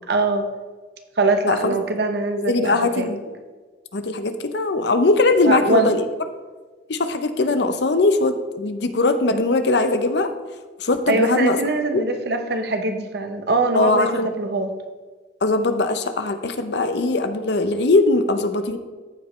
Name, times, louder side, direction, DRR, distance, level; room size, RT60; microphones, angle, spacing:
voice 1, 0.1-0.5 1.2-3.1 5.4-5.9 11.1-14.7, right 3 dB, 65° right, 6 dB, 0.8 m, -22 dB
voice 2, 2.5-3.2 3.9-6.0 6.9-10.3 10.8-11.6 11.9-12.0 13.7-14.3 15.4-18.8, left 2 dB, 70° left, 9 dB, 0.7 m, -20 dB
14.0 x 5.1 x 3.2 m, 1.4 s
head